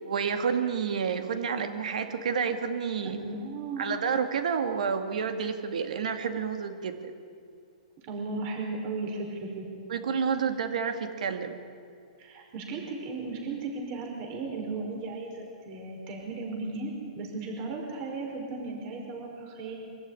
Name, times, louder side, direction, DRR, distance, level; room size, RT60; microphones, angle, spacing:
voice 1, 0.0-3.2 3.8-7.1 9.9-11.6, right 6 dB, 75° right, 7 dB, 2.2 m, -29 dB
voice 2, 3.0-3.8 8.1-9.6 12.2-19.7, right 3 dB, 35° right, 1 dB, 5.2 m, -36 dB
24.0 x 14.5 x 10.0 m, 2.4 s
hypercardioid pair, 145°, 4 cm